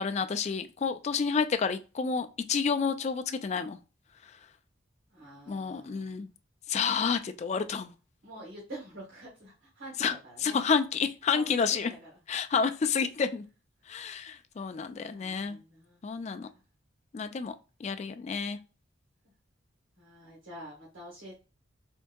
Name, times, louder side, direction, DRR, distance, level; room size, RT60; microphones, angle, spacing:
voice 1, 0.0-3.8 5.5-6.3 6.7-7.9 10.0-10.2 10.4-11.9 12.3-13.4 13.9-15.6 16.0-16.5 17.1-17.5 17.8-18.6, left 5 dB, 35° left, 0.3 m, -29 dB
voice 2, 5.1-6.1 8.2-10.6 11.3-12.1 15.1-16.0 16.5-16.6 20.0-21.4, right 1 dB, 90° right, 1.7 m, -47 dB
4.4 x 2.6 x 2.2 m
head